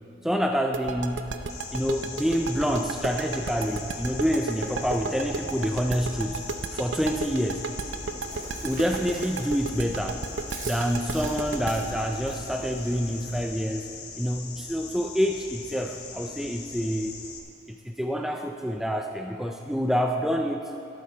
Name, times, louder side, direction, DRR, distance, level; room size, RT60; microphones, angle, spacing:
voice 1, 0.2-1.3 1.7-6.4 6.7-7.6 8.6-10.2 10.6-13.9 14.2-17.2 17.7-20.7, equal, ahead, 3 dB, 0.4 m, -27 dB
sound 1, 0.7-13.5, right 4 dB, 90° right, 0.6 m, -33 dB
sound 2, 1.5-17.4, left 4 dB, 55° left, 1.2 m, -41 dB
Chewing mastication, 7.7-13.5, right 2 dB, 45° right, 1.4 m, -42 dB
13.5 x 11.5 x 4.5 m, 2.8 s
head